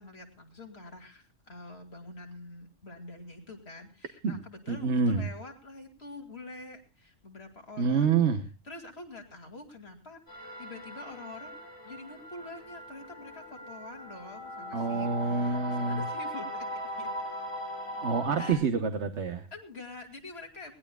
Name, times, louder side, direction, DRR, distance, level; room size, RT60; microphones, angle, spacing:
voice 1, 0.0-8.2 8.6-15.6 15.9-16.7 17.0-17.1 18.4-18.6 19.5-20.7, left 2 dB, 50° left, 3 dB, 2.8 m, -46 dB
voice 2, 4.7-5.3 7.8-8.4 14.7-16.0 18.0-19.5, right 5 dB, 60° right, 8 dB, 1.3 m, -27 dB
sound 1, 10.3-18.5, equal, 20° left, 7.1 m, -39 dB
21.5 x 18.5 x 2.3 m, 0.29 s
omnidirectional pair, 1.3 m